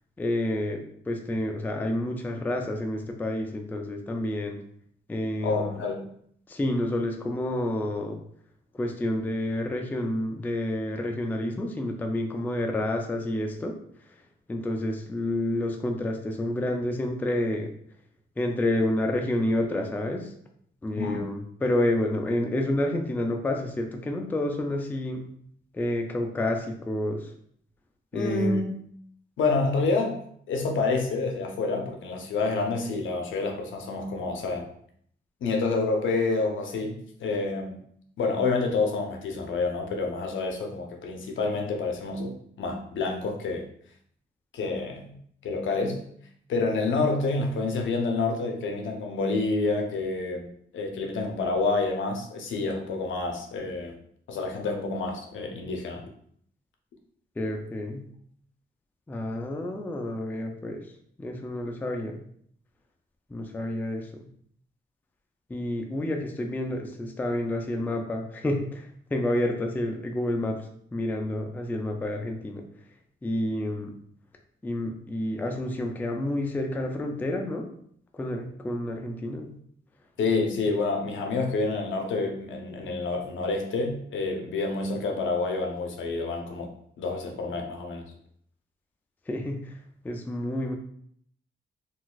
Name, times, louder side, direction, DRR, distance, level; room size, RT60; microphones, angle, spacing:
voice 1, 0.2-4.6 5.1-5.8 6.5-8.2 8.7-13.8 14.5-17.7 18.4-20.3 20.8-25.3 25.7-27.3 28.1-28.6 57.4-58.1 59.1-60.8 61.2-62.2 63.3-64.3 65.5-72.6 73.2-73.9 74.6-77.7 78.1-79.5 89.3-89.7 90.0-90.7, left 1 dB, 10° left, 3 dB, 0.3 m, -29 dB
voice 2, 5.4-6.0 21.0-21.2 28.1-28.7 29.4-30.2 30.5-34.6 35.4-37.8 38.2-43.7 44.5-46.0 46.5-50.5 50.7-54.0 54.3-56.0 80.2-86.7 87.0-88.0, left 3 dB, 75° left, 2 dB, 0.7 m, -28 dB
3.9 x 2.4 x 2.3 m, 0.65 s
cardioid pair, 125°, 20 cm